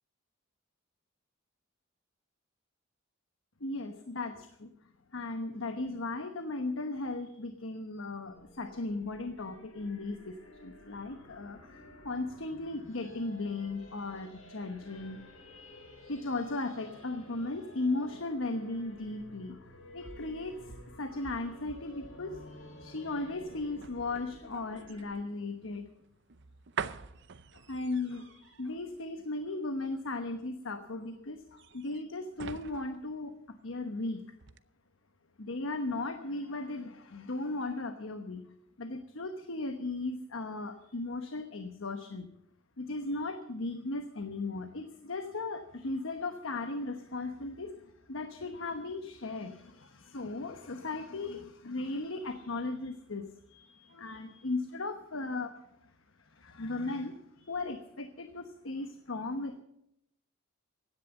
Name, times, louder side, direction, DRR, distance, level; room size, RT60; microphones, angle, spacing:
voice 1, 3.6-4.7 5.1-15.2 16.1-22.4 22.8-25.9 27.5-34.2 35.4-38.5 38.8-42.3 42.8-55.9 56.2-59.6, left 2 dB, 75° left, 7 dB, 1.1 m, -37 dB
sound 1, 8.2-25.1, left 1 dB, 90° left, 6.1 m, -52 dB
sound 2, 19.7-34.0 34.4-34.6, right 6 dB, 60° right, 0.6 m, -47 dB
16.0 x 10.5 x 7.1 m, 0.76 s
head